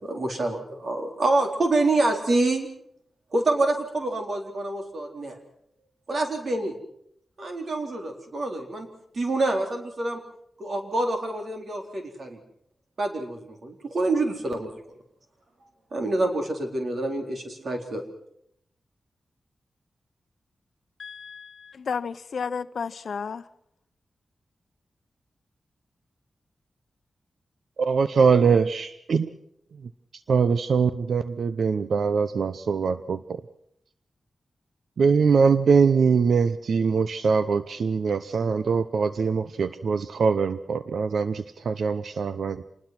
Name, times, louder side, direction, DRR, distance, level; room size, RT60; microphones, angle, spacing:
voice 1, 0.0-2.7 3.3-5.4 6.1-6.7 7.4-8.9 9.1-10.2 10.6-12.4 13.0-14.7 15.9-18.0, right 2 dB, 50° right, 4 dB, 4.1 m, -26 dB
voice 2, 21.0-23.4, left 6 dB, 65° left, 13 dB, 0.8 m, -32 dB
voice 3, 27.8-29.3 30.3-33.4 35.0-42.6, right 5 dB, 70° right, 12 dB, 0.8 m, -22 dB
27.0 x 20.5 x 6.0 m, 0.71 s
wide cardioid pair, 165°, 0 cm